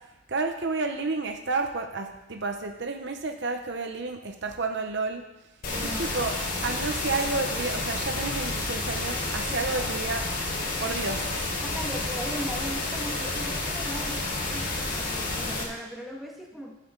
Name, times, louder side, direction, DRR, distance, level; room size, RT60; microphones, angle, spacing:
voice 1, 0.3-5.2 5.8-6.4 6.6-10.2 10.8-11.4, right 3 dB, 55° right, 5 dB, 0.9 m, -31 dB
sound 1, 5.6-15.6, left 2 dB, 45° left, 3.9 m, -30 dB
voice 2, 5.7-6.1 9.5-9.6 11.6-16.7, equal, ahead, -2 dB, 1.8 m, -38 dB
22.0 x 8.2 x 3.9 m, 1.0 s
head